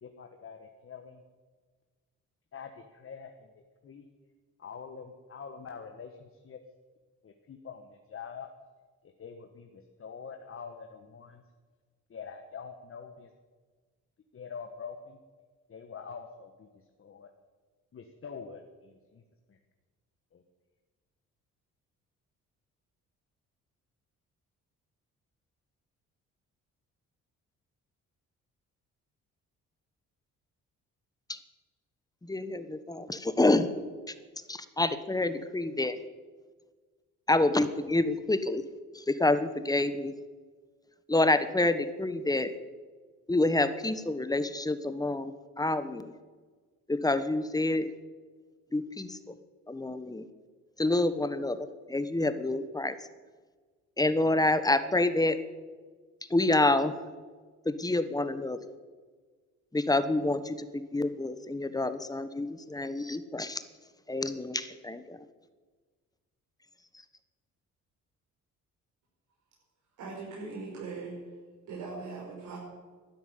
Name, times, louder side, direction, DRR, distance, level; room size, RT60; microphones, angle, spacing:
voice 1, 0.0-1.2 2.5-3.5 3.8-4.1 4.6-6.6 7.2-8.5 9.0-11.4 12.1-13.3 14.3-15.2 15.7-17.3 17.9-19.2 19.5-19.6 20.3-20.4, left 6 dB, 45° left, 5 dB, 1.5 m, -45 dB
voice 2, 32.2-33.7 34.1-34.2 34.5-36.0 37.3-38.6 38.9-40.1 41.1-42.5 43.3-46.1 46.9-47.9 48.7-49.2 49.7-50.3 50.8-53.0 54.0-55.4 56.3-56.9 57.6-58.6 59.7-63.6 64.1-65.2, left 2 dB, 10° left, 12 dB, 1.2 m, -28 dB
voice 3, 70.0-71.2 71.6-72.6, right 4 dB, 85° right, -5 dB, 5.3 m, -40 dB
12.5 x 10.5 x 10.0 m, 1.4 s
cardioid pair, 90°, 30 cm